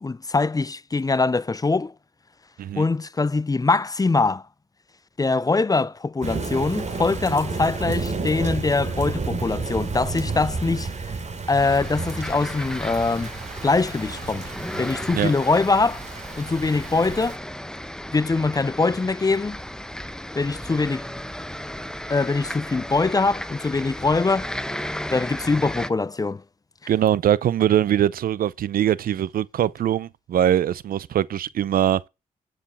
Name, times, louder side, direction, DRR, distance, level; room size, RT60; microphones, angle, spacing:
voice 1, 0.0-1.9 2.7-4.4 5.2-11.1 11.5-13.3 13.6-14.5 14.8-16.0 16.4-17.4 18.1-19.6 20.4-21.1 22.1-24.5 25.1-26.4, left 3 dB, 25° left, 0.5 m, -23 dB
Thunder / Rain, 6.2-17.4, right 4 dB, 50° right, 3.0 m, -31 dB
sound 1, 11.6-25.9, left 1 dB, 5° left, 0.9 m, -35 dB
voice 2, 26.9-32.1, right 10 dB, 80° right, 0.6 m, -22 dB
10.0 x 6.9 x 5.4 m
cardioid pair, 60°, 15 cm